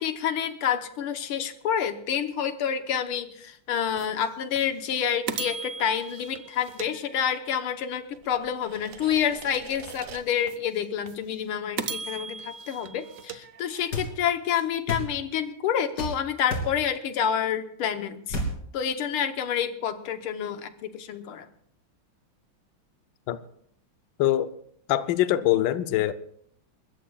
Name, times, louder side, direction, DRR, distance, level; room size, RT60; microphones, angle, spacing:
voice 1, 0.0-18.4 18.7-21.5, left 8 dB, 90° left, 9 dB, 1.9 m, -28 dB
sound 1, 4.0-4.1 4.6-4.7 5.3-7.6 8.1-10.6 11.1-11.2 11.8-14.1, right 6 dB, 60° right, 0.9 m, -38 dB
sound 2, 13.9-14.1 14.9-15.1 16.0-16.2 16.5-16.7 18.3-18.6, left 1 dB, 50° left, 3.4 m, -29 dB
voice 2, 24.2-24.5 24.9-26.1, left 13 dB, 70° left, 11 dB, 1.3 m, -23 dB
29.0 x 14.5 x 2.3 m, 0.66 s
omnidirectional pair, 2.3 m